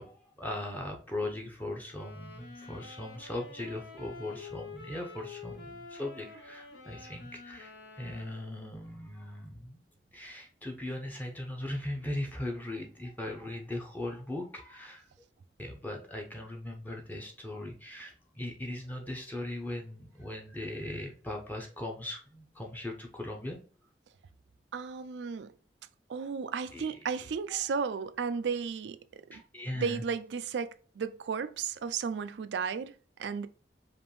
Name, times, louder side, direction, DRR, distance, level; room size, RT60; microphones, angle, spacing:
voice 1, 0.0-7.7 8.0-9.8 10.1-15.1 15.6-23.6 26.7-27.0 27.5-27.6 29.3-30.0, left 1 dB, 10° left, 0.7 m, -39 dB
sound 1, 1.9-8.7, left 4 dB, 80° left, 1.0 m, -48 dB
voice 2, 24.7-25.5 26.1-29.0 29.3-29.4 29.7-33.5, right 6 dB, 80° right, 0.4 m, -34 dB
5.1 x 2.6 x 3.0 m
head